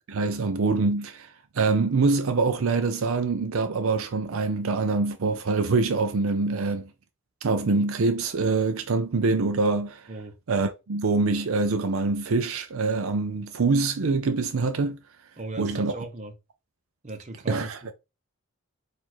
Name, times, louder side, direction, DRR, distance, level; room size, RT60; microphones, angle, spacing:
voice 1, 0.1-6.9 7.4-10.1 10.5-15.0 15.6-15.9 17.5-17.8, right 3 dB, 70° right, 0.5 m, -25 dB
voice 2, 15.4-16.3 17.0-17.7, right 2 dB, 30° right, 0.8 m, -36 dB
4.5 x 2.6 x 4.4 m
head